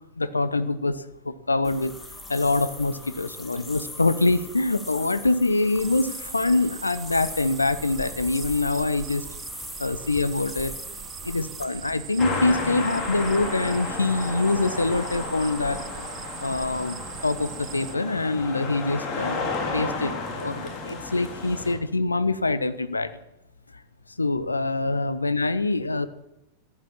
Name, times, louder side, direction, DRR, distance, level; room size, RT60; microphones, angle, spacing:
voice 1, 0.2-1.9 2.3-9.2 9.8-10.7 11.2-15.8 16.4-23.1 24.2-26.1, left 2 dB, 80° left, 14 dB, 0.8 m, -25 dB
sound 1, 1.6-11.6, left 2 dB, 10° left, 2.2 m, -41 dB
sound 2, 5.8-18.0, right 11 dB, 30° right, 0.7 m, -41 dB
sound 3, 12.2-21.7, left 3 dB, 35° left, 4.2 m, -32 dB
14.0 x 11.0 x 7.2 m, 0.87 s
figure-of-eight pair, 90°, 0 cm